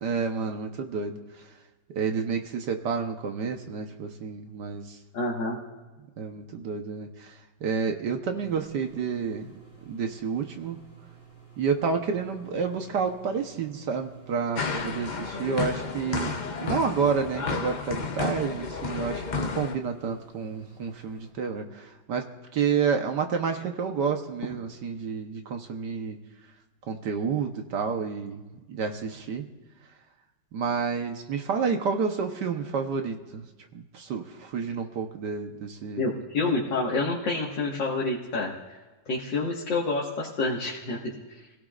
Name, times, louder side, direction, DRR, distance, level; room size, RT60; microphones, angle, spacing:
voice 1, 0.0-1.2 1.9-5.0 6.2-7.3 7.6-9.5 9.9-10.8 11.6-16.3 16.6-22.3 22.5-26.2 26.9-28.4 28.7-29.5 30.5-33.4 33.7-36.1, right 5 dB, 70° right, 4 dB, 1.6 m, -29 dB
voice 2, 5.1-5.6 36.0-38.5 39.1-41.0, left 3 dB, 85° left, -4 dB, 2.4 m, -28 dB
sound 1, 8.4-21.3, right 7 dB, 5° left, 4.0 m, -52 dB
sound 2, 14.6-19.7, left 5 dB, 60° left, 0.4 m, -32 dB
28.0 x 17.0 x 2.5 m, 1.2 s
omnidirectional pair, 1.9 m